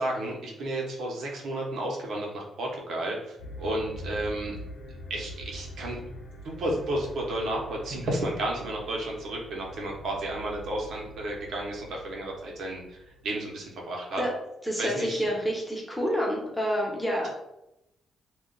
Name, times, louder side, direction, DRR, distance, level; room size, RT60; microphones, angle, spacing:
voice 1, 0.0-4.5 5.1-6.0 6.4-14.2 14.8-15.3, right 1 dB, 70° right, -1 dB, 0.9 m, -32 dB
sound 1, 3.4-13.7, equal, 60° left, 0.8 m, -44 dB
voice 2, 14.6-17.3, equal, 5° left, -2 dB, 1.0 m, -28 dB
2.4 x 2.3 x 3.8 m, 0.87 s
cardioid pair, 80°, 0 cm